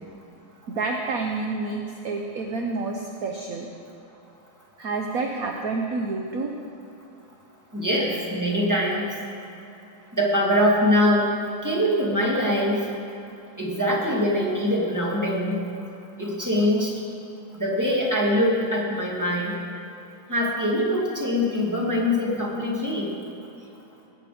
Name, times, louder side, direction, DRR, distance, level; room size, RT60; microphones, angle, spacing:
voice 1, 0.7-3.7 4.8-6.5, right 3 dB, 55° right, 2 dB, 1.2 m, -29 dB
voice 2, 7.7-9.1 10.1-11.3 11.6-12.9 13.6-15.7 16.2-16.9 17.6-19.5 20.3-23.1, left 1 dB, 10° right, -4 dB, 2.3 m, -23 dB
19.5 x 8.9 x 5.0 m, 2.8 s
omnidirectional pair, 2.3 m